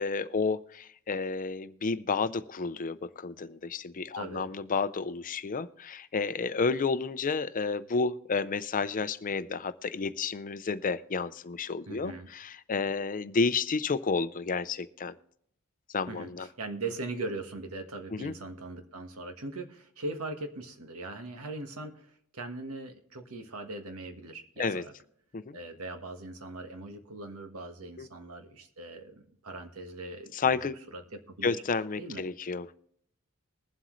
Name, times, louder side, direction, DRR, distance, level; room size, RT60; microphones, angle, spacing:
voice 1, 0.0-15.1 15.9-16.5 18.1-18.3 24.6-24.8 25.3-25.6 28.0-28.1 30.3-30.8 31.4-32.8, left 4 dB, 40° left, 14 dB, 0.5 m, -31 dB
voice 2, 4.1-4.5 11.9-12.3 16.1-24.9 25.5-30.6 30.9-31.6 32.0-32.2, right 2 dB, 80° right, 6 dB, 1.4 m, -40 dB
21.5 x 7.7 x 3.1 m, 0.67 s
head